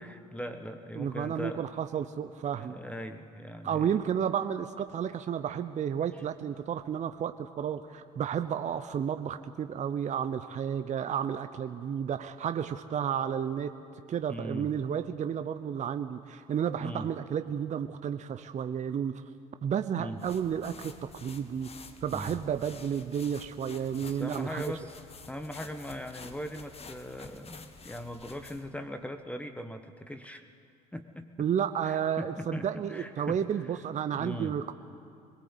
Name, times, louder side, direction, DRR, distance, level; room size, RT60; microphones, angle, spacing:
voice 1, 0.0-1.7 2.5-3.9 6.1-6.2 14.3-14.7 16.8-17.1 19.9-20.2 22.1-22.4 24.0-24.9 25.3-30.5 30.9-31.5 31.8-33.4 34.1-34.6, equal, 5° left, 8 dB, 1.4 m, -40 dB
voice 2, 1.0-2.8 3.6-13.7 14.1-19.2 19.6-21.7 22.0-24.6 31.4-34.7, right 8 dB, 35° right, 10 dB, 0.8 m, -32 dB
sound 1, 20.2-28.8, left 4 dB, 30° left, 1.8 m, -49 dB
21.5 x 21.0 x 8.2 m, 2.4 s
hypercardioid pair, 65°, 20 cm